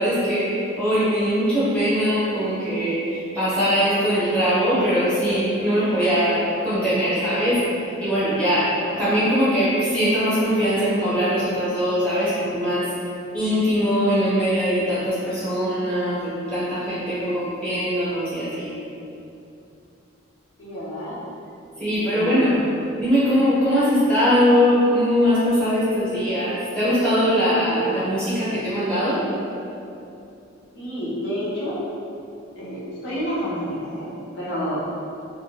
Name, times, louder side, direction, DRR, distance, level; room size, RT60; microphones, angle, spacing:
voice 1, 0.0-8.7 9.0-12.9 13.3-18.7 21.8-22.6 23.0-29.2, equal, 5° left, -13 dB, 1.0 m, -21 dB
voice 2, 20.6-21.2 21.9-22.6 30.7-31.8 32.6-34.8, equal, 65° left, -9 dB, 0.9 m, -29 dB
3.3 x 2.1 x 2.9 m, 2.7 s
head